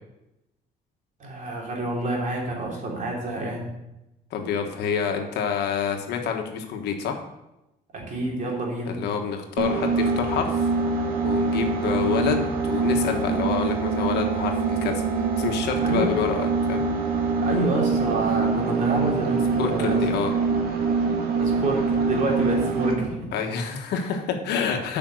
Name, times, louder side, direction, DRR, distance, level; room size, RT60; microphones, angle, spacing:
voice 1, 1.2-3.7 7.9-9.0 15.8-16.1 17.4-20.0 21.4-23.3, right 2 dB, 50° right, -2 dB, 3.3 m, -28 dB
voice 2, 4.3-7.2 8.8-10.7 11.2-16.8 19.6-20.3 23.3-25.0, left 7 dB, 80° left, 4 dB, 1.4 m, -27 dB
sound 1, 9.6-23.1, right 4 dB, 65° right, 1.8 m, -24 dB
8.6 x 5.8 x 6.4 m, 0.93 s
cardioid pair, 110°, 17 cm